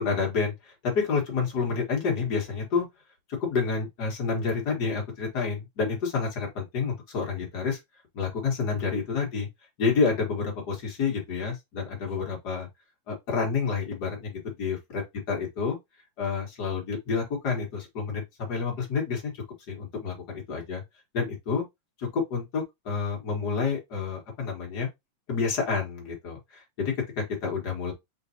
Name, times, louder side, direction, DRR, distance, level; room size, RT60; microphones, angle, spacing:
voice 1, 0.0-2.8 3.4-7.8 8.1-9.5 9.8-12.7 13.1-15.8 16.2-19.3 19.7-20.8 21.1-21.6 22.1-24.9 25.3-27.9, left 5 dB, 40° left, 1.7 m, -29 dB
4.0 x 3.8 x 2.8 m
omnidirectional pair, 3.3 m